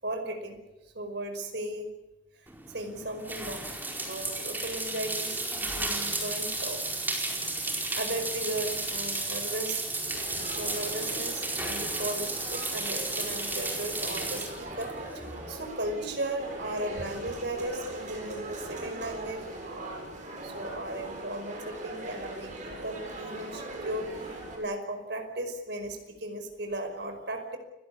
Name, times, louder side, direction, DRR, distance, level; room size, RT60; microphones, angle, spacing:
voice 1, 0.0-0.6 1.0-1.9 2.7-3.7 4.1-6.8 8.0-9.9 10.5-27.6, right 1 dB, 60° right, 6 dB, 5.3 m, -36 dB
sound 1, 2.5-15.7, right 2 dB, 10° right, 4.6 m, -33 dB
sound 2, 10.1-24.6, right 2 dB, 40° right, 7.6 m, -40 dB
29.5 x 17.0 x 8.4 m, 1.0 s
head